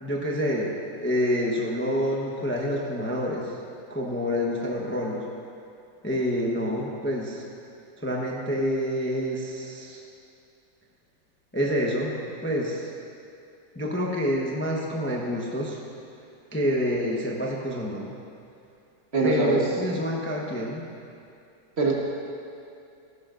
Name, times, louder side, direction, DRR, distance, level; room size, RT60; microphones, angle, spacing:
voice 1, 0.0-3.6 3.9-5.2 6.0-7.4 8.0-10.0 11.5-12.9 13.7-15.8 16.5-18.1 19.2-20.9, equal, 10° left, -2 dB, 0.6 m, -27 dB
voice 2, 19.1-19.6 21.8-21.9, right 3 dB, 40° right, -3 dB, 1.4 m, -22 dB
16.0 x 11.0 x 2.5 m, 2.6 s
omnidirectional pair, 2.0 m